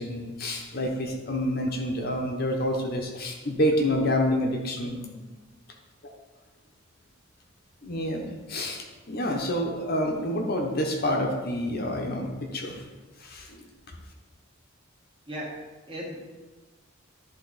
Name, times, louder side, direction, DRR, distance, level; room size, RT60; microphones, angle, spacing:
voice 1, 0.0-5.0 6.0-6.1 7.8-12.9 13.2-13.6, left 1 dB, 50° left, 2 dB, 0.9 m, -28 dB
voice 2, 4.8-5.2 15.3-15.6 15.9-16.3, equal, 25° right, -3 dB, 1.5 m, -37 dB
11.0 x 3.7 x 4.0 m, 1.2 s
head